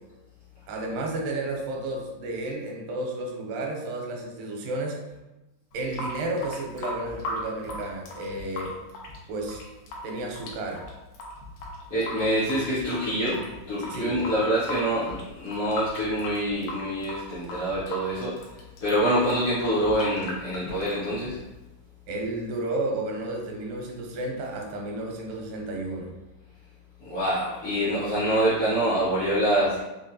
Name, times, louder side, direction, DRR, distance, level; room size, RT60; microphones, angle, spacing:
voice 1, 0.7-5.0 5.7-8.8 9.3-9.6 10.0-10.8 13.9-14.2 22.1-26.1, right 2 dB, 85° right, 1 dB, 2.4 m, -32 dB
Water tap faucet / Sink (filling or washing) / Drip, 5.7-21.7, left 1 dB, 85° left, 2.4 m, -38 dB
voice 2, 11.9-13.4 13.7-18.3 18.8-21.4 27.0-29.8, right 1 dB, 70° left, -11 dB, 1.4 m, -25 dB
5.8 x 2.2 x 2.6 m, 1.0 s
omnidirectional pair, 3.8 m